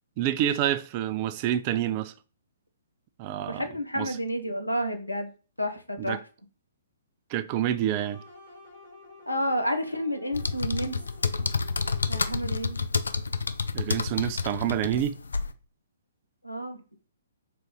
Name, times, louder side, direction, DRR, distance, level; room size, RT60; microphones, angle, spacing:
voice 1, 0.2-2.1 3.2-3.7 4.0-4.2 6.0-6.2 7.3-8.2 13.7-15.1, right 11 dB, 35° right, 0.3 m, -28 dB
voice 2, 3.5-5.3 5.6-6.2 9.3-11.0 12.1-12.8 16.4-16.8, equal, 90° left, 0.8 m, -30 dB
sound 1, 7.9-12.9, left 3 dB, 50° left, 1.4 m, -51 dB
sound 2, 10.3-15.5, left 4 dB, 70° left, 0.4 m, -29 dB
4.0 x 2.5 x 4.7 m
figure-of-eight pair, 125°, 0 cm